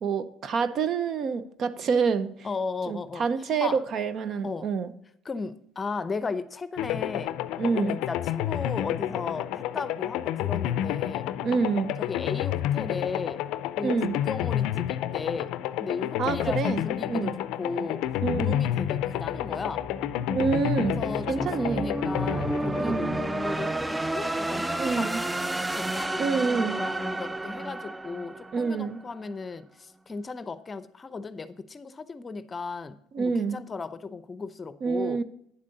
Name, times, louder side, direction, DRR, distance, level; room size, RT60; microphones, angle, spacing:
voice 1, 0.0-2.5 2.9-4.9 7.6-7.9 11.4-12.0 13.8-14.2 16.2-16.8 17.1-17.4 18.2-18.6 20.3-21.9 22.8-23.2 24.8-25.2 26.2-26.8 28.5-29.0 33.1-33.6 34.8-35.2, right 5 dB, 50° right, 14 dB, 0.6 m, -27 dB
voice 2, 2.4-3.3 3.6-3.8 4.4-4.7 5.2-7.4 7.7-11.3 12.1-13.4 13.8-15.5 15.8-17.3 17.6-18.1 18.3-19.9 20.8-25.1 25.7-35.2, left 4 dB, 30° left, 14 dB, 0.6 m, -35 dB
sound 1, 6.8-23.7, left 12 dB, 75° left, 0.4 m, -30 dB
sound 2, 18.1-29.1, right 2 dB, 10° right, 0.4 m, -32 dB
9.5 x 7.6 x 3.9 m, 0.72 s
supercardioid pair, 85°, 0 cm